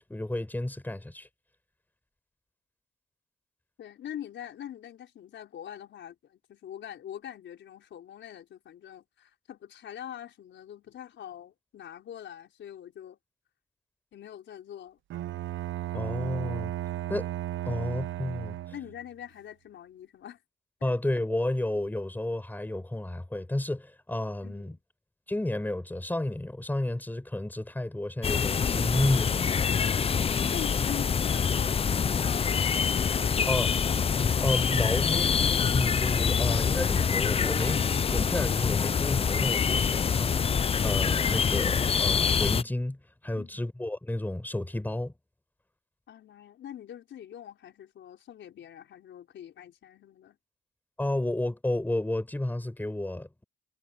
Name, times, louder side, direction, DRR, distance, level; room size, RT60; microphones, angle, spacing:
voice 1, 0.1-1.3 15.9-16.7 17.1-17.3 17.6-18.5 20.8-24.8 25.3-29.4 33.5-33.7 34.4-35.3 35.7-40.4 40.8-43.0 43.2-45.1 51.0-53.4, left 1 dB, 10° left, 5.0 m, -31 dB
voice 2, 3.8-13.2 14.1-15.0 17.6-17.8 18.7-20.4 20.8-20.9 24.4-24.8 29.5-29.6 30.5-33.6 43.3-43.6 46.1-50.4, left 10 dB, 70° left, 4.8 m, -44 dB
Bowed string instrument, 15.1-19.1, right 14 dB, 75° right, 1.0 m, -35 dB
sound 1, 28.2-42.6, left 6 dB, 30° left, 0.5 m, -25 dB
cardioid pair, 90°, 20 cm